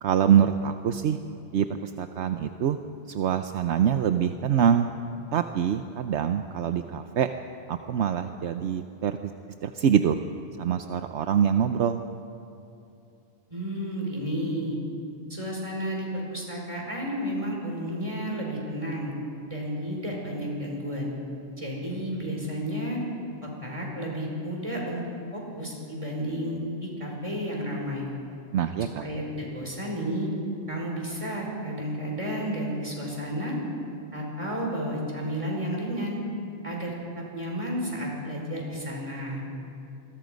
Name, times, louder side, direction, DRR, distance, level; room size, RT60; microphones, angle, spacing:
voice 1, 0.0-1.2 1.5-2.8 3.1-4.9 5.3-7.3 7.7-9.3 9.6-10.2 10.6-12.0 28.5-29.0, right 8 dB, 75° right, 8 dB, 1.0 m, -24 dB
voice 2, 13.5-14.8 15.3-19.1 19.5-21.1 21.6-23.0 23.4-25.0 25.3-28.1 28.8-30.3 30.7-33.6 34.1-36.2 36.6-39.4, equal, 30° right, -2 dB, 5.2 m, -32 dB
27.0 x 22.0 x 5.2 m, 2.7 s
omnidirectional pair, 1.2 m